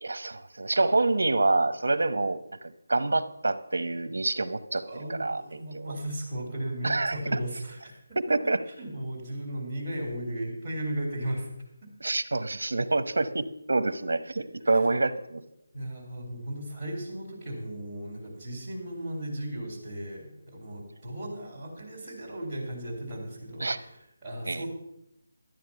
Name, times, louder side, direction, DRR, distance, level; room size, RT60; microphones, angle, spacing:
voice 1, 0.0-6.0 6.8-7.2 8.3-8.6 12.0-15.4 23.6-23.8 24.5-24.6, right 2 dB, 80° right, 13 dB, 0.9 m, -27 dB
voice 2, 4.8-8.5 8.8-11.5 14.6-14.8 15.7-24.7, right 1 dB, 5° right, -10 dB, 3.4 m, -36 dB
13.0 x 9.3 x 5.7 m, 0.80 s
figure-of-eight pair, 175°, 0 cm